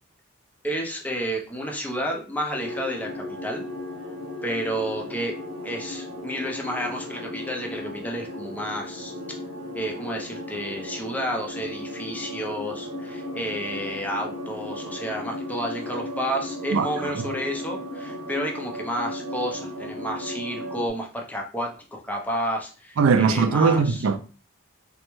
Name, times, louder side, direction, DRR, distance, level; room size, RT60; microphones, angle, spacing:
voice 1, 0.6-3.6 4.4-5.3 5.6-9.4 9.7-24.1, equal, 10° left, 0.5 m, -31 dB
sound 1, 2.5-20.9, left 1 dB, 85° left, 1.1 m, -35 dB
voice 2, 16.7-17.3 23.0-24.2, right 5 dB, 80° right, 0.4 m, -21 dB
3.4 x 2.1 x 3.0 m
head